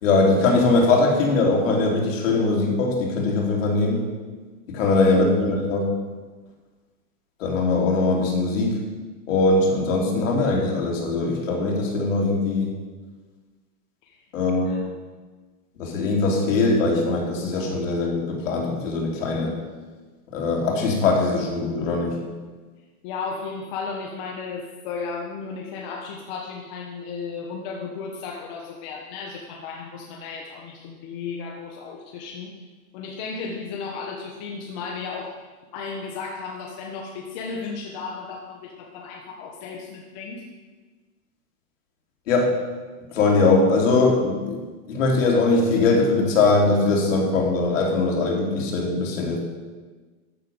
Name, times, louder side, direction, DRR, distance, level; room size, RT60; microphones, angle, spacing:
voice 1, 0.0-4.1 4.7-5.9 7.4-8.8 9.3-12.7 14.3-14.7 15.8-19.5 20.3-22.2 42.3-42.5 43.1-49.4, left 3 dB, 55° left, -1 dB, 3.4 m, -21 dB
voice 2, 14.6-15.0 23.0-32.5 32.9-35.4 35.7-40.4, left 5 dB, 30° left, 0 dB, 1.2 m, -34 dB
13.5 x 8.1 x 5.3 m, 1.3 s
hypercardioid pair, 155°, 45 cm